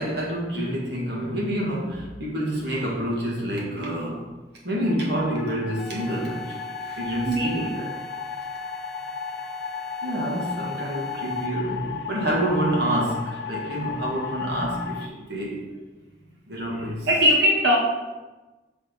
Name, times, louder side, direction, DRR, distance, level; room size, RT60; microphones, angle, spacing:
voice 1, 0.0-4.2 4.6-7.9 10.0-15.6 16.5-17.1, right 1 dB, 65° right, -3 dB, 1.6 m, -28 dB
sound 1, 4.8-15.1, left 7 dB, 65° left, 0.3 m, -35 dB
sound 2, 5.8-11.7, equal, ahead, 0.5 m, -40 dB
voice 2, 7.3-7.9 13.6-13.8 14.3-14.7 17.1-17.8, equal, 90° right, -2 dB, 1.5 m, -22 dB
6.1 x 3.1 x 5.3 m, 1.2 s
head